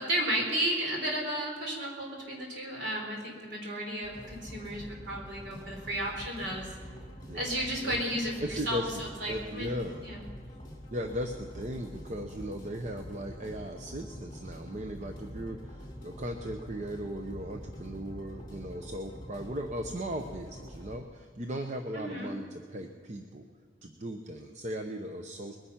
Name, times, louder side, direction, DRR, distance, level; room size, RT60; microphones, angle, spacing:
voice 1, 0.0-6.7 7.3-9.7 10.0-10.2 21.9-22.3, right 1 dB, 55° right, -1 dB, 4.0 m, -33 dB
sound 1, 4.0-21.0, equal, 20° left, 4.2 m, -45 dB
voice 2, 7.2-8.0 8.4-8.9 9.2-10.1 10.9-23.5 23.8-25.6, equal, 35° right, 5 dB, 0.7 m, -37 dB
21.5 x 9.9 x 5.8 m, 2.1 s
head